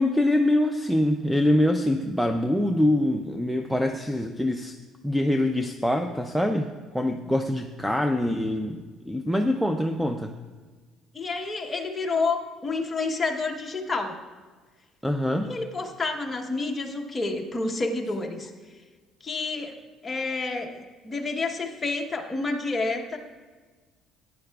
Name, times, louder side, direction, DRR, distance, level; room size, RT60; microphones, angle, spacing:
voice 1, 0.0-4.8 5.0-8.8 9.1-10.3 15.0-15.5, left 1 dB, ahead, 5 dB, 0.4 m, -24 dB
voice 2, 11.1-14.1 15.4-18.5 19.2-19.8 20.0-23.2, left 3 dB, 20° left, 2 dB, 1.0 m, -29 dB
16.5 x 9.8 x 2.3 m, 1.4 s
cardioid pair, 140°, 0 cm